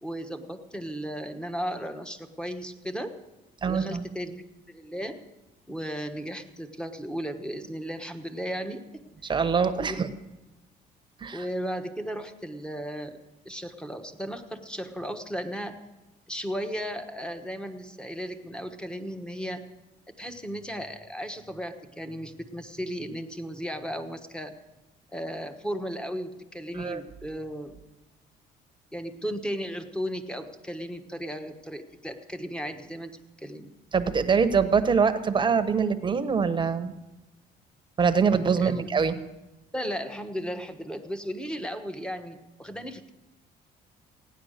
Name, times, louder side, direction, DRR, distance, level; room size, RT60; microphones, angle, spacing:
voice 1, 0.0-3.2 3.6-5.2 5.7-8.8 9.7-10.2 11.3-13.2 13.4-15.8 16.3-19.6 20.2-24.5 25.1-27.8 28.9-33.7 38.6-38.9 39.7-43.1, equal, 5° left, 8 dB, 1.2 m, -35 dB
voice 2, 3.6-4.0 9.2-10.1 11.2-11.4 26.7-27.0 33.9-36.9 38.0-39.1, right 5 dB, 30° right, 10 dB, 1.0 m, -24 dB
16.0 x 9.9 x 6.5 m, 1.0 s
cardioid pair, 110°, 17 cm